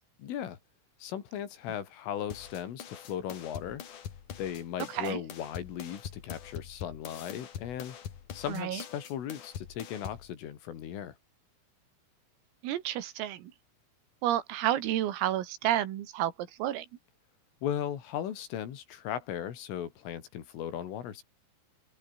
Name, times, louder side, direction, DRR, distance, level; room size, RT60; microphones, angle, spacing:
voice 1, 0.2-0.6 1.0-3.8 4.4-8.0 8.3-11.2 17.6-21.2, left 10 dB, 75° left, 5.3 m, -37 dB
sound 1, 2.3-10.3, left 8 dB, 50° left, 3.0 m, -44 dB
voice 2, 4.9-5.2 8.5-8.8 12.6-13.5 14.2-16.9, right 12 dB, 85° right, 4.7 m, -30 dB
open air
omnidirectional pair, 6.0 m